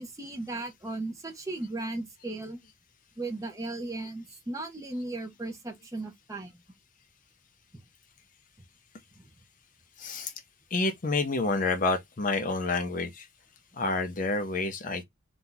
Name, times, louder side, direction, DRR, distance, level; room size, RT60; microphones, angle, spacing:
voice 1, 0.0-2.6 3.2-6.6 9.2-9.3, right 2 dB, 15° right, 0.7 m, -36 dB
voice 2, 10.0-10.3 10.7-13.2 13.8-15.0, left 3 dB, 40° left, 0.5 m, -28 dB
2.7 x 2.3 x 3.7 m
head